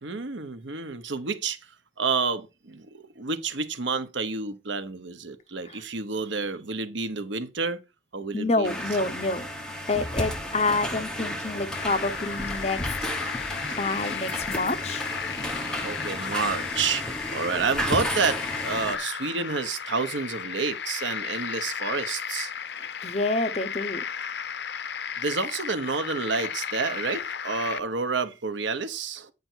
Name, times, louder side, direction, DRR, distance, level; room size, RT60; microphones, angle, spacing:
voice 1, 0.0-1.7 2.0-7.8 8.1-9.1 13.4-13.8 15.1-15.2 15.8-22.5 25.2-29.3, right 4 dB, 80° right, 1.0 m, -29 dB
voice 2, 8.3-9.5 9.9-13.3 13.8-15.1 22.8-24.0, left 2 dB, 35° left, 0.8 m, -28 dB
sound 1, 8.6-18.9, equal, 5° left, 1.3 m, -33 dB
sound 2, 11.7-27.8, left 7 dB, 65° left, 0.6 m, -34 dB
9.3 x 5.3 x 4.5 m
head